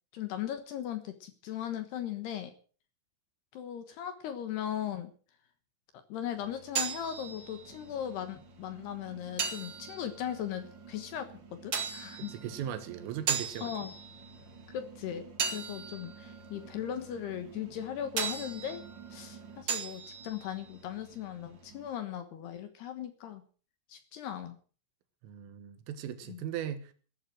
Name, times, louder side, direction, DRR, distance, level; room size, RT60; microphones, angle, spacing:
voice 1, 0.1-2.5 3.5-5.1 5.9-12.3 13.6-13.9 14.7-18.8 19.1-23.4 23.9-24.6 26.3-26.4, left 10 dB, 65° left, 2.9 m, -38 dB
sound 1, 6.3-21.9, right 6 dB, 60° right, 1.2 m, -39 dB
voice 2, 12.2-13.7 25.2-26.9, right 9 dB, 80° right, 4.0 m, -38 dB
14.5 x 13.0 x 6.4 m
omnidirectional pair, 5.9 m